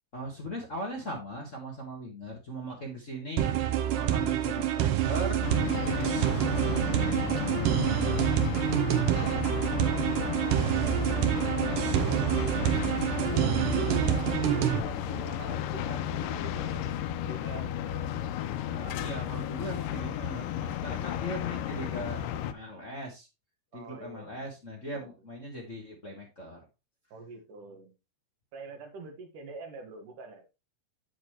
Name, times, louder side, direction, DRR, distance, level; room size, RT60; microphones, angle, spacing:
voice 1, 0.1-8.3 13.6-14.2 18.6-23.3 23.7-26.6, equal, 45° left, -2 dB, 1.0 m, -39 dB
sound 1, 3.4-14.8, right 12 dB, 90° right, 2.4 m, -27 dB
sound 2, 5.4-22.5, left 10 dB, 90° left, 2.2 m, -33 dB
voice 2, 8.8-12.7 13.2-16.9 17.3-18.1 20.9-21.2 23.7-24.4 24.9-25.1 27.1-27.9 28.5-30.5, right 3 dB, 75° right, 4 dB, 3.2 m, -45 dB
8.2 x 7.2 x 3.1 m, 0.26 s
omnidirectional pair, 3.8 m